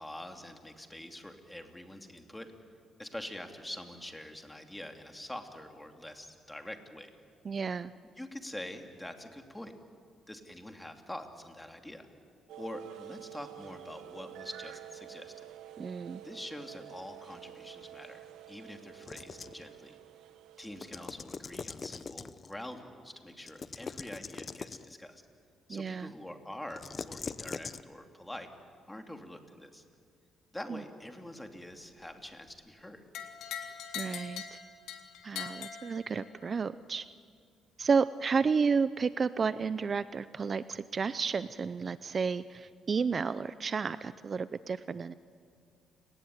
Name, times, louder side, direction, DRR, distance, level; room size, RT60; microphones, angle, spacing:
voice 1, 0.0-2.5 3.0-7.1 8.2-9.7 10.3-12.1 12.6-15.4 16.2-20.0 20.6-25.2 25.7-28.5 28.9-29.8 30.5-33.0, left 1 dB, 10° left, 5 dB, 2.8 m, -45 dB
voice 2, 7.4-7.9 15.8-16.2 25.7-26.1 30.7-30.8 33.9-34.6 35.2-37.0 37.8-45.1, right 5 dB, 40° right, 15 dB, 0.6 m, -31 dB
sound 1, 12.5-21.1, right 12 dB, 85° right, 1.5 m, -49 dB
sound 2, 19.0-19.7 20.6-22.5 23.4-24.9 26.7-27.8, left 5 dB, 40° left, 0.8 m, -42 dB
sound 3, 33.1-36.5, left 8 dB, 85° left, 2.3 m, -42 dB
29.5 x 19.0 x 9.6 m, 2.2 s
cardioid pair, 90°, 0 cm